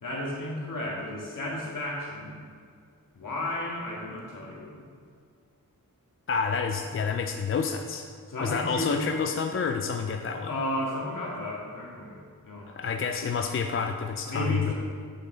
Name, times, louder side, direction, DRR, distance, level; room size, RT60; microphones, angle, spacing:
voice 1, 0.0-2.5 3.1-4.8 8.3-9.2 10.5-12.7 14.3-14.7, left 1 dB, 65° left, -4 dB, 2.0 m, -33 dB
voice 2, 6.3-8.1 8.4-10.5 12.7-14.7, left 5 dB, 40° left, 5 dB, 0.4 m, -29 dB
8.1 x 6.1 x 3.9 m, 2.1 s
wide cardioid pair, 110°, 34 cm